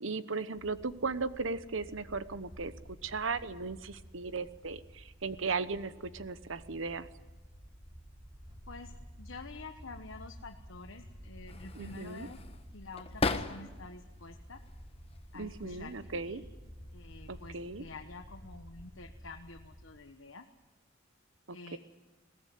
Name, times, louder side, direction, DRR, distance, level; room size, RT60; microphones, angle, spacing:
voice 1, 0.0-2.7 3.0-7.1 11.8-12.3 15.4-16.4 17.3-17.8 21.5-21.8, right 4 dB, 70° right, 14 dB, 1.0 m, -37 dB
sound 1, 0.5-19.8, equal, 25° right, 5.4 m, -52 dB
voice 2, 8.7-12.4 12.7-14.6 15.3-16.5 16.9-20.4 21.5-21.8, left 3 dB, 70° left, 5 dB, 1.2 m, -48 dB
sound 2, 11.5-14.0 14.4-15.2 16.2-16.5 16.8-17.6, left 3 dB, 30° left, 1.1 m, -37 dB
21.0 x 17.5 x 9.4 m, 1.2 s
head